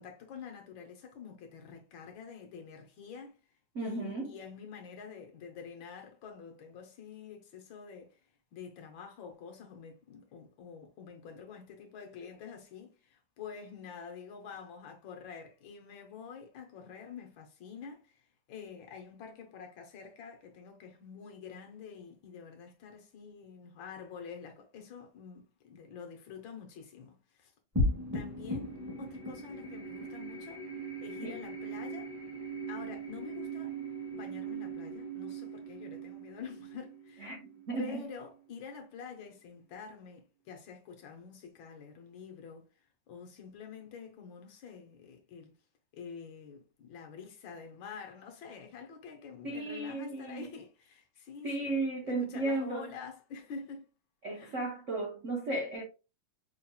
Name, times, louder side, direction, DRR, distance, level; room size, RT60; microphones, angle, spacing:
voice 1, 0.0-3.4 3.8-8.2 8.5-18.2 18.5-27.5 28.1-30.6 31.0-32.1 32.7-33.8 34.1-37.3 37.8-42.7 43.1-45.5 45.9-53.9 54.3-54.6, left 6 dB, 70° left, 1.4 m, -47 dB
voice 2, 3.7-4.3 31.2-31.4 37.2-38.0 49.4-50.5 51.4-52.9 54.2-55.8, right 2 dB, 60° right, 0.8 m, -35 dB
sound 1, 27.7-38.4, right 1 dB, 15° right, 0.6 m, -38 dB
5.4 x 2.8 x 2.2 m
omnidirectional pair, 2.4 m